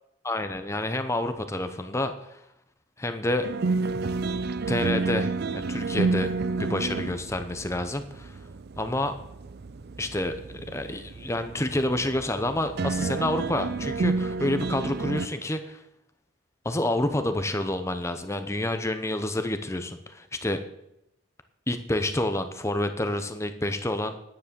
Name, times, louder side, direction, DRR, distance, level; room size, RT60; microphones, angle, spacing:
voice 1, 0.2-2.4 3.0-3.5 4.7-6.3 6.6-8.4 8.8-9.1 10.0-15.8 16.6-20.6 21.7-24.1, left 1 dB, 15° left, 8 dB, 0.8 m, -28 dB
sound 1, 3.4-15.3, right 3 dB, 55° right, 0.5 m, -30 dB
10.0 x 9.5 x 6.9 m, 0.82 s
head